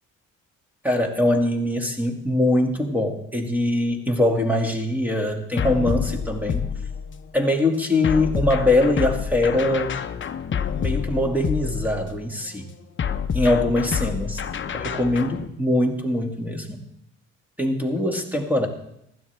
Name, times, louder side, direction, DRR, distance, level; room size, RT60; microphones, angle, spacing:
voice 1, 0.8-6.7 7.3-10.0 10.8-12.7 13.3-14.4 14.7-16.8 17.6-18.7, left 1 dB, 5° right, 3 dB, 2.3 m, -22 dB
sound 1, 5.6-7.3 8.0-12.2 13.0-15.5, left 7 dB, 40° left, 0.9 m, -28 dB
15.5 x 12.5 x 3.5 m, 0.79 s
cardioid pair, 90°, 30 cm